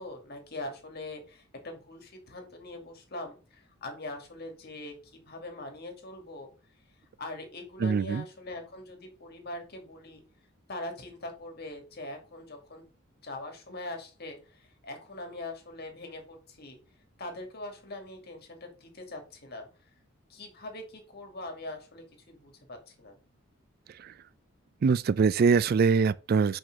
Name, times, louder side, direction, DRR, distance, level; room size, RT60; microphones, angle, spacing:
voice 1, 0.0-6.5 7.2-10.2 10.7-12.8 13.2-16.8 17.2-19.7 20.3-23.2, left 2 dB, 50° left, 2.3 m, -42 dB
voice 2, 7.8-8.2 23.9-24.1 24.8-26.6, right 5 dB, 50° right, 0.3 m, -24 dB
5.8 x 5.2 x 5.9 m
head